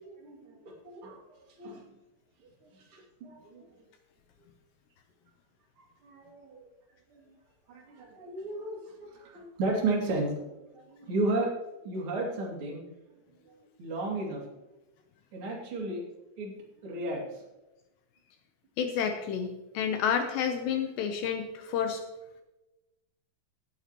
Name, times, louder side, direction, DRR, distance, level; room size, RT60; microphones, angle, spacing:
voice 1, 0.2-0.5 0.8-1.2 1.6-1.8 2.9-3.6 6.0-6.6 7.1-7.2 7.7-11.5 11.8-12.8 13.8-14.4 15.3-16.0 16.4-16.5 16.8-17.2, right 2 dB, 35° right, -2 dB, 2.5 m, -33 dB
voice 2, 18.8-22.0, left 7 dB, 75° left, 5 dB, 2.7 m, -30 dB
18.0 x 9.2 x 3.0 m, 1.0 s
omnidirectional pair, 5.5 m